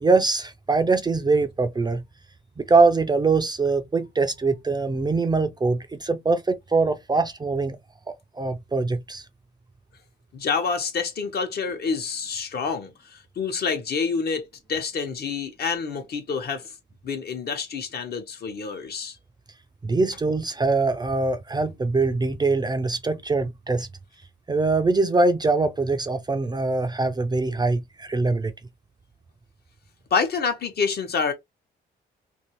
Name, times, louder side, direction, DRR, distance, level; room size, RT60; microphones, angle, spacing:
voice 1, 0.0-2.0 2.6-7.8 8.1-9.2 19.8-23.9 24.5-28.5, right 3 dB, 20° right, 0.4 m, -23 dB
voice 2, 10.3-16.7 17.0-19.2 30.1-31.3, left 5 dB, 55° left, 0.9 m, -27 dB
2.6 x 2.6 x 3.0 m
cardioid pair, 90°, 20 cm